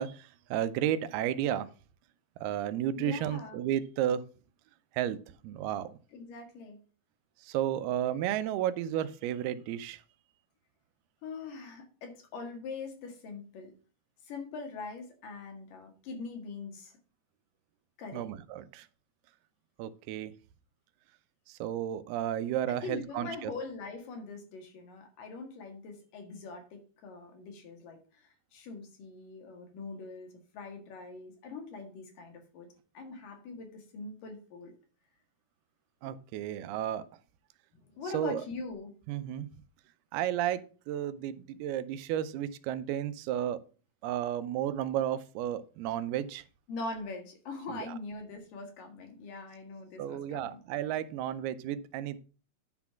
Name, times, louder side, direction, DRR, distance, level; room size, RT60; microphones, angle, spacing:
voice 1, 0.0-1.7 2.4-4.2 4.9-6.0 7.4-10.0 18.1-18.9 19.8-20.3 21.5-23.5 36.0-37.0 38.1-38.4 39.1-39.5 40.1-43.6 44.0-46.4 47.7-48.0 50.0-52.2, right 11 dB, 80° right, 13 dB, 2.6 m, -33 dB
voice 2, 3.0-3.6 6.1-6.8 11.2-13.7 14.3-16.9 18.0-18.3 22.7-32.7 32.9-34.7 36.0-36.1 37.8-38.9 46.7-50.6, left 3 dB, 60° left, 3 dB, 3.2 m, -42 dB
10.5 x 4.1 x 5.7 m, 0.37 s
omnidirectional pair, 4.6 m